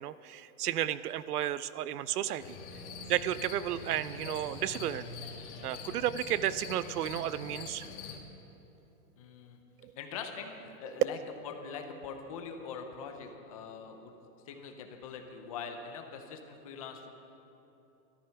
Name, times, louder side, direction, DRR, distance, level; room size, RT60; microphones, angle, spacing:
voice 1, 0.0-2.6 3.1-5.1 5.6-7.9 9.8-9.9 10.8-11.0, right 12 dB, 85° right, 16 dB, 0.7 m, -32 dB
sound 1, 2.4-8.2, left 4 dB, 50° left, 1.8 m, -44 dB
voice 2, 9.2-9.6 10.0-11.2 11.4-14.1 14.5-17.1, left 6 dB, 25° left, 5 dB, 0.7 m, -43 dB
14.0 x 12.5 x 5.8 m, 3.0 s
supercardioid pair, 175°, 44 cm